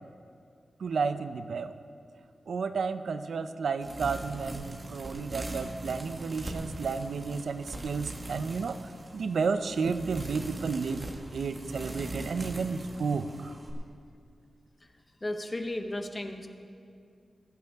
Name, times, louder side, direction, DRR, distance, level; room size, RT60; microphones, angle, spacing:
voice 1, 0.8-1.7 2.5-11.0 11.3-13.5, right 5 dB, 85° right, 10 dB, 0.5 m, -32 dB
sound 1, 3.8-13.7, right 2 dB, 30° right, 1.5 m, -41 dB
voice 2, 15.2-16.5, left 1 dB, 20° left, 6 dB, 0.8 m, -34 dB
19.5 x 10.5 x 3.5 m, 2.3 s
wide cardioid pair, 180°, 0 cm